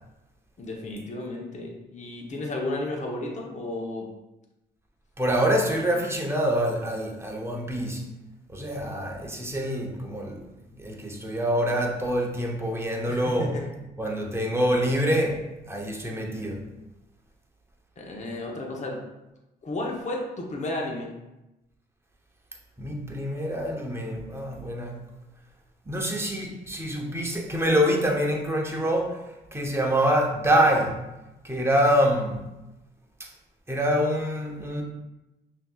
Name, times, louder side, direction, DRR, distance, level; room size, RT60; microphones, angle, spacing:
voice 1, 0.6-4.1 13.1-13.7 18.0-19.0 19.6-21.1, left 2 dB, 40° left, -1 dB, 0.9 m, -33 dB
voice 2, 5.2-8.1 8.5-10.5 10.8-13.6 14.0-16.6 22.8-25.0 25.9-29.2 29.5-31.0 31.4-32.5 33.2-33.3 33.7-34.8, equal, 15° right, 0 dB, 0.8 m, -25 dB
5.7 x 2.8 x 2.4 m, 0.98 s
cardioid pair, 70°, 18 cm